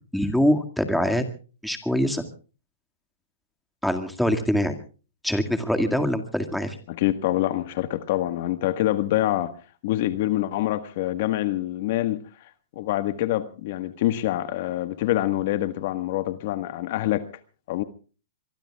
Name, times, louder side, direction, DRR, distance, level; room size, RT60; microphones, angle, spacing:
voice 1, 0.1-1.3 1.6-2.2 3.8-4.7 5.2-6.8, equal, ahead, 2.0 m, -23 dB
voice 2, 6.9-9.5 9.8-12.2 12.7-17.3 17.7-17.8, left 14 dB, 50° left, 1.4 m, -25 dB
24.5 x 23.5 x 2.3 m
hypercardioid pair, 145°, 0 cm